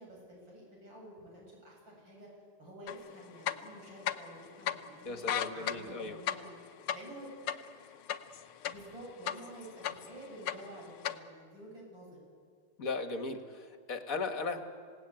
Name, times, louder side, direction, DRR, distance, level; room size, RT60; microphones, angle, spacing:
voice 1, 0.0-2.3 2.6-5.2 5.5-6.6 6.9-7.3 8.6-12.1, right 1 dB, 60° right, -3 dB, 8.3 m, -50 dB
sound 1, 2.9-3.0 3.4-4.4 4.7-4.8 5.1-8.9 9.3-10.1 10.4-11.2, left 10 dB, 85° left, 1.7 m, -34 dB
voice 2, 5.0-6.2 12.8-14.6, left 3 dB, 45° left, 6 dB, 1.9 m, -37 dB
27.0 x 18.0 x 9.0 m, 2.1 s
omnidirectional pair, 2.3 m